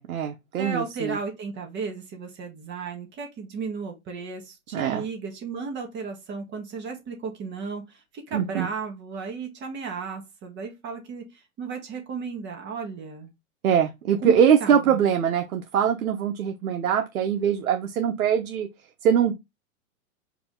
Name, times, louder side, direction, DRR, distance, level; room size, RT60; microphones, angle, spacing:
voice 1, 0.0-1.2 4.7-5.0 8.3-8.7 13.6-18.7 19.0-19.3, right 8 dB, 80° right, 1.0 m, -22 dB
voice 2, 0.6-13.3 14.2-14.3 14.6-15.0, right 5 dB, 25° right, 1.5 m, -34 dB
4.8 x 2.9 x 3.7 m
hypercardioid pair, 130°, 42 cm